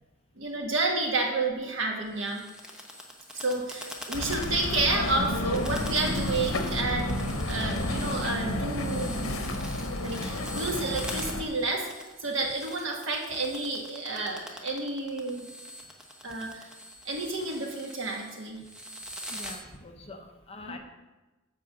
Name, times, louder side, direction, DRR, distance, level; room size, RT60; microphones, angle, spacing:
voice 1, 0.4-2.5 3.3-9.4 10.0-15.5 16.2-16.6 17.0-18.7 20.7-20.8, right 2 dB, 65° right, 1 dB, 1.5 m, -30 dB
sound 1, 2.1-19.6, equal, 5° right, 1.0 m, -43 dB
sound 2, 4.1-11.4, left 1 dB, 80° left, 0.9 m, -31 dB
voice 2, 19.3-20.8, left 2 dB, 30° left, 4 dB, 0.7 m, -44 dB
10.0 x 3.7 x 7.1 m, 1.1 s
head